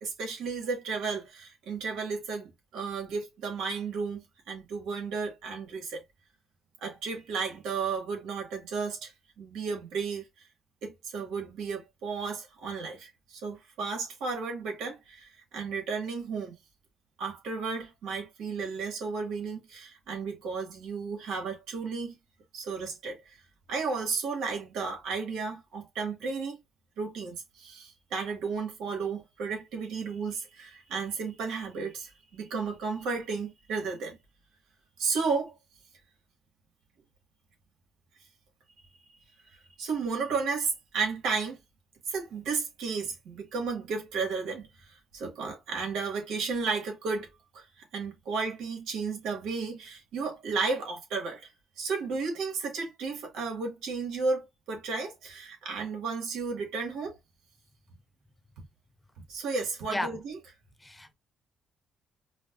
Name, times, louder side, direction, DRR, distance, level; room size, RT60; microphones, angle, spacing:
voice 1, 0.0-6.0 6.8-10.2 10.8-16.5 17.2-22.1 22.5-23.4 23.7-26.6 27.0-34.2 35.0-35.5 39.8-41.6 42.1-47.3 47.5-51.5 51.8-57.1 59.3-60.4, right 4 dB, 90° right, 1.5 m, -33 dB
voice 2, 59.9-60.2 60.8-61.1, left 1 dB, 10° left, 0.4 m, -34 dB
5.1 x 2.3 x 2.4 m
cardioid pair, 90°, 0 cm